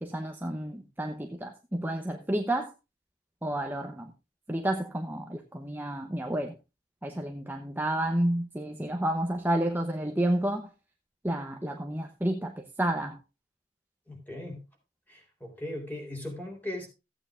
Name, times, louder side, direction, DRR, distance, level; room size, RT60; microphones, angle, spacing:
voice 1, 0.0-2.7 3.4-4.1 4.5-6.5 7.0-10.7 11.2-13.2, right 1 dB, 10° right, 3 dB, 0.9 m, -30 dB
voice 2, 14.1-14.6 15.1-16.9, left 1 dB, 10° left, 1 dB, 3.7 m, -38 dB
15.5 x 8.8 x 2.5 m, 0.26 s
head